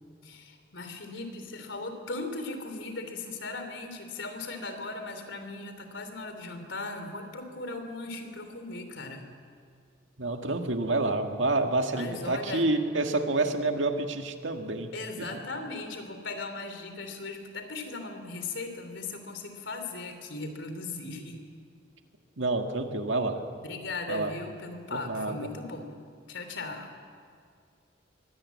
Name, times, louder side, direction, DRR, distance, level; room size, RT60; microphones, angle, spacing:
voice 1, 0.2-9.3 11.9-12.7 14.9-21.4 23.6-26.0 26.3-27.0, left 3 dB, 80° left, 6 dB, 3.3 m, -38 dB
voice 2, 10.2-14.9 15.2-15.3 22.4-23.4 24.1-24.3 24.9-25.5, right 2 dB, 85° right, 5 dB, 1.9 m, -28 dB
23.5 x 18.0 x 8.5 m, 2.2 s
head